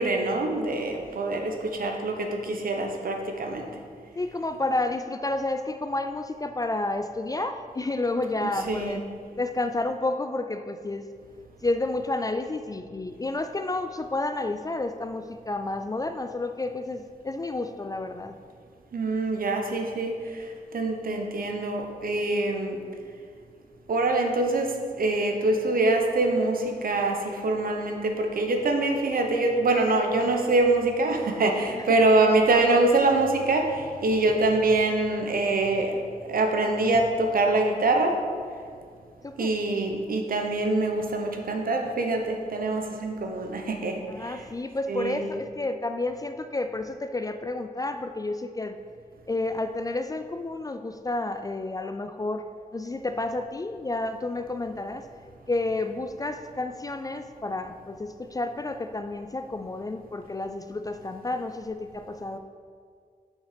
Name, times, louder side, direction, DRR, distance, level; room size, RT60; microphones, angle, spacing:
voice 1, 0.0-3.7 8.4-9.0 18.9-20.2 20.7-22.8 23.9-35.9 36.3-38.2 39.4-44.4 44.9-45.3, right 2 dB, 70° right, 3 dB, 1.0 m, -24 dB
voice 2, 4.2-9.0 9.4-11.1 11.6-18.3 31.8-32.0 39.2-39.6 44.1-48.8 49.3-52.4 52.7-55.1 55.5-62.4, left 2 dB, 25° left, 8 dB, 0.3 m, -30 dB
6.5 x 6.1 x 5.0 m, 2.1 s
wide cardioid pair, 105°, 15 cm